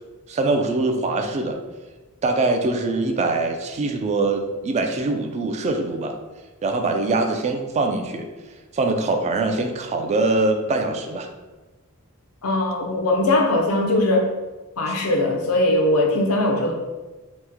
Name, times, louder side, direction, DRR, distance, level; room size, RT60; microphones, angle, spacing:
voice 1, 0.3-1.6 2.2-6.2 6.6-8.2 8.7-11.3, right 3 dB, 30° right, 4 dB, 0.3 m, -23 dB
voice 2, 12.4-14.2 14.8-16.7, left 1 dB, 70° left, 2 dB, 0.6 m, -20 dB
3.0 x 2.1 x 3.4 m, 1.2 s
head